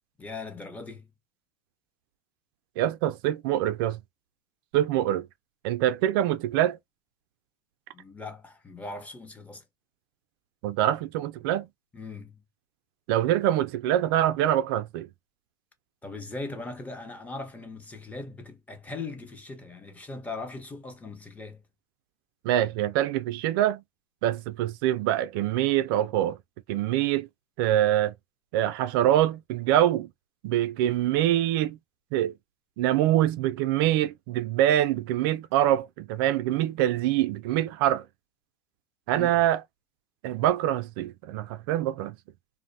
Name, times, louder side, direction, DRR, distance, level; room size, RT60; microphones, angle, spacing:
voice 1, 0.2-1.1 7.9-9.6 11.9-12.4 16.0-21.6 39.1-39.4, left 3 dB, 10° left, 0.7 m, -39 dB
voice 2, 2.8-4.0 4.7-5.3 5.6-6.8 10.6-11.7 13.1-15.1 22.4-23.8 24.2-26.4 26.7-27.3 27.6-28.1 28.5-30.1 30.4-31.8 32.1-32.3 32.8-38.1 39.1-39.6 40.2-42.2, right 12 dB, 65° right, 0.4 m, -24 dB
2.6 x 2.1 x 2.5 m
supercardioid pair, 125°, 13 cm